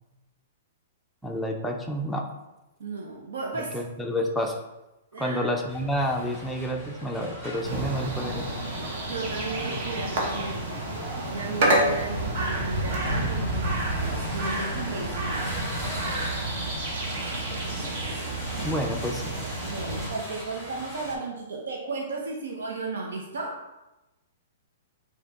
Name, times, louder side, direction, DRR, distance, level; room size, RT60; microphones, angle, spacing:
voice 1, 1.2-2.3 3.7-4.6 5.2-8.5 18.6-19.4, equal, ahead, 0 dB, 0.5 m, -29 dB
voice 2, 2.8-3.8 5.1-5.5 9.0-10.7 11.3-15.6 18.5-18.8 19.7-23.6, right 3 dB, 90° right, -1 dB, 0.7 m, -35 dB
sound 1, 5.7-21.1, right 1 dB, 20° right, 1.5 m, -40 dB
sound 2, 7.6-20.1, right 1 dB, 50° right, 1.0 m, -29 dB
4.8 x 2.9 x 3.6 m, 1.0 s
hypercardioid pair, 155°, 0 cm